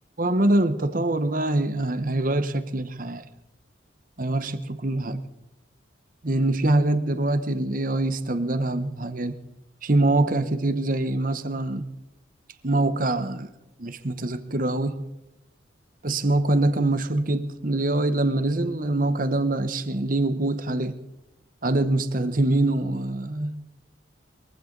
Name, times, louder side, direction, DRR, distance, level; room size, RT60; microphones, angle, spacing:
voice 1, 0.2-3.2 4.2-5.2 6.2-9.3 9.8-11.9 12.6-13.5 13.8-15.0 16.0-20.9 21.6-23.6, right 2 dB, 45° right, 1.1 m, -24 dB
22.5 x 15.5 x 4.0 m
head